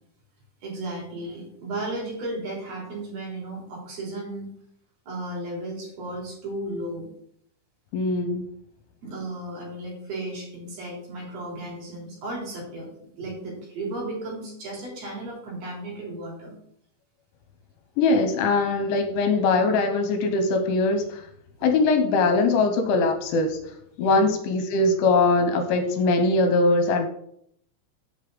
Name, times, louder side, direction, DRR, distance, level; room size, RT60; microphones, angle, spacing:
voice 1, 0.6-4.5 5.1-7.1 9.0-16.6 24.0-24.3, right 1 dB, 50° right, -2 dB, 4.9 m, -34 dB
voice 2, 7.9-8.4 18.0-21.2 21.6-23.6 24.0-27.1, left 3 dB, 75° left, 7 dB, 3.2 m, -21 dB
8.2 x 5.6 x 7.7 m, 0.70 s
omnidirectional pair, 5.9 m